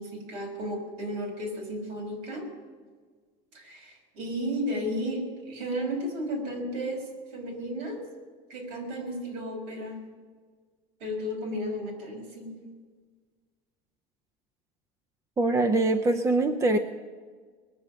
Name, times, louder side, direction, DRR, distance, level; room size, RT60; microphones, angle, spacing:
voice 1, 0.0-2.5 3.5-8.0 8.5-10.0 11.0-12.5, equal, 65° right, 0 dB, 5.9 m, -33 dB
voice 2, 15.4-16.8, right 2 dB, 15° right, 8 dB, 0.6 m, -23 dB
21.5 x 7.3 x 9.2 m, 1.5 s
cardioid pair, 160°, 17 cm